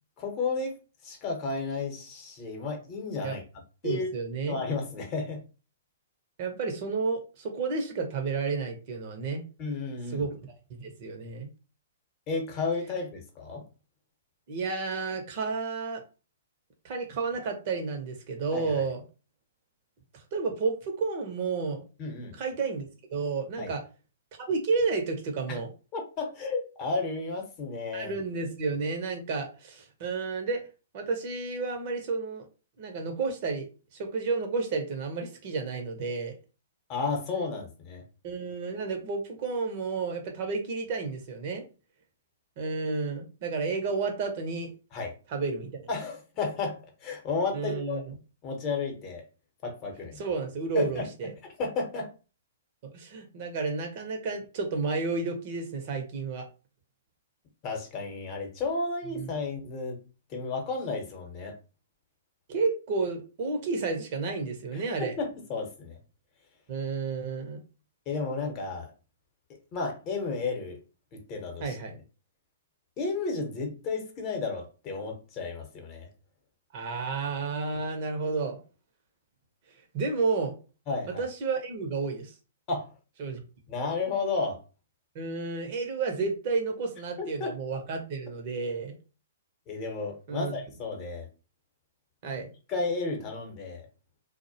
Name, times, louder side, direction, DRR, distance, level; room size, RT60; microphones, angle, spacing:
voice 1, 0.2-0.8 1.0-3.4 3.8-4.1 4.5-5.4 9.6-10.2 12.3-13.6 18.5-18.7 22.0-22.4 23.6-23.7 25.5-25.6 25.9-28.1 36.9-38.0 44.9-45.1 45.9-48.0 48.4-49.2 49.6-50.2 50.8-51.1 51.4-52.1 57.6-60.0 60.3-61.5 64.7-66.0 68.1-68.9 69.7-70.8 71.1-71.8 73.0-76.1 80.9-81.2 82.7-82.9 83.7-84.6 87.2-87.5 89.7-91.3 92.7-93.9, left 4 dB, 35° left, 2 dB, 0.8 m, -32 dB
voice 2, 3.8-4.6 6.4-9.4 10.1-11.5 14.5-16.0 16.8-19.0 20.1-21.8 22.4-23.8 24.4-25.7 27.9-30.6 30.9-32.5 32.8-33.7 33.9-36.3 38.2-41.7 42.6-44.7 45.3-45.8 47.5-48.1 50.2-51.3 52.9-56.5 59.2-59.3 62.5-65.1 66.7-67.6 71.6-72.0 76.7-78.6 79.9-80.6 81.2-82.3 83.2-83.4 85.1-88.9 90.3-90.6 92.2-92.5, right 4 dB, 45° right, 4 dB, 0.6 m, -31 dB
2.3 x 2.0 x 2.7 m, 0.33 s
hypercardioid pair, 125°, 0 cm